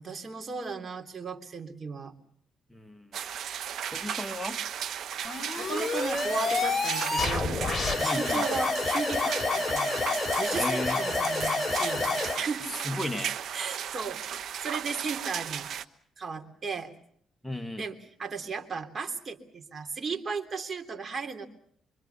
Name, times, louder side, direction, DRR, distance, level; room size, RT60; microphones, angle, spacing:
voice 1, 0.0-2.1 5.6-7.6 8.0-10.1 10.4-12.7 13.5-15.7 16.2-16.9 17.8-21.5, right 5 dB, 35° right, 5 dB, 3.4 m, -36 dB
voice 2, 2.7-3.2 3.9-4.6 8.0-8.5 10.6-11.1 12.8-13.3 17.4-17.9, left 1 dB, 5° left, 6 dB, 2.1 m, -35 dB
sound 1, 3.1-15.8, right 9 dB, 70° right, 1.2 m, -35 dB
sound 2, 5.2-12.4, left 3 dB, 30° left, 3.4 m, -28 dB
25.0 x 24.0 x 7.1 m, 0.65 s
cardioid pair, 90°, 0 cm